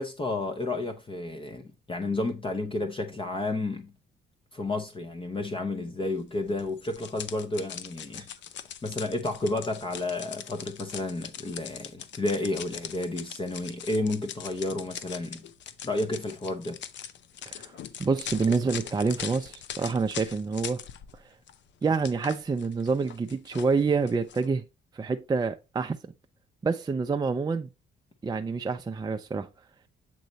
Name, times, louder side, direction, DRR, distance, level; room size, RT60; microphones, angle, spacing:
voice 1, 0.0-3.9 4.5-8.2 8.8-15.4 15.8-16.8, left 2 dB, 25° left, 0.7 m, -31 dB
sound 1, 6.6-21.2 21.5-24.5, left 9 dB, 65° left, 0.6 m, -41 dB
voice 2, 18.0-20.8 21.1-21.2 21.8-24.6 24.9-26.1 26.6-27.7 28.2-29.5, right 4 dB, 20° right, 0.5 m, -27 dB
7.7 x 3.1 x 4.0 m
cardioid pair, 90°, 20 cm